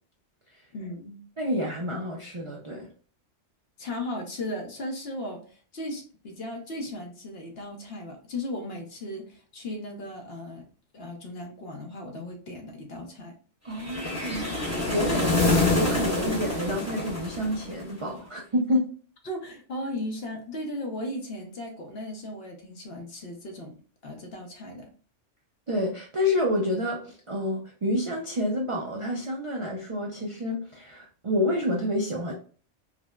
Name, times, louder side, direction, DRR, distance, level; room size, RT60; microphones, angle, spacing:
voice 1, 0.7-1.2 3.8-10.6 10.9-13.4 19.2-23.7 24.0-24.9, left 1 dB, 60° left, 1.0 m, -36 dB
voice 2, 1.4-2.9 13.6-18.9 25.7-32.3, left 1 dB, 50° right, 0.4 m, -29 dB
sound 1, 13.8-18.0, left 2 dB, 15° left, 1.0 m, -26 dB
4.9 x 2.1 x 2.3 m
omnidirectional pair, 1.2 m